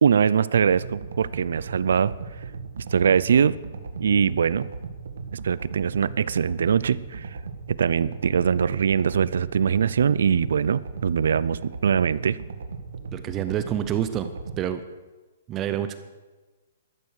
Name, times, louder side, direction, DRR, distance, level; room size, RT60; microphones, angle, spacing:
voice 1, 0.0-2.1 2.9-3.6 4.0-4.7 5.3-7.3 7.7-12.4, right 7 dB, 70° right, 19 dB, 0.5 m, -22 dB
sound 1, 0.6-14.6, right 4 dB, 85° right, 2.0 m, -37 dB
voice 2, 13.1-14.3 14.6-14.8 15.5-16.0, right 10 dB, 15° right, 11 dB, 0.5 m, -27 dB
14.0 x 12.5 x 6.6 m, 1.3 s
hypercardioid pair, 175°, 0 cm